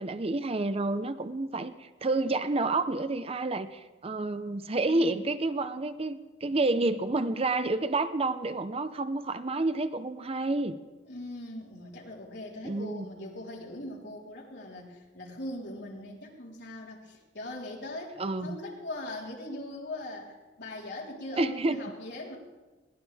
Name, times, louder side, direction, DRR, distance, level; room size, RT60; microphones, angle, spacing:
voice 1, 0.0-10.8 12.6-13.1 18.2-18.6 21.4-21.8, right 2 dB, 30° right, 11 dB, 0.6 m, -29 dB
voice 2, 4.8-5.2 11.0-22.4, left 1 dB, 65° left, -3 dB, 4.1 m, -40 dB
22.0 x 17.5 x 3.5 m, 1.2 s
head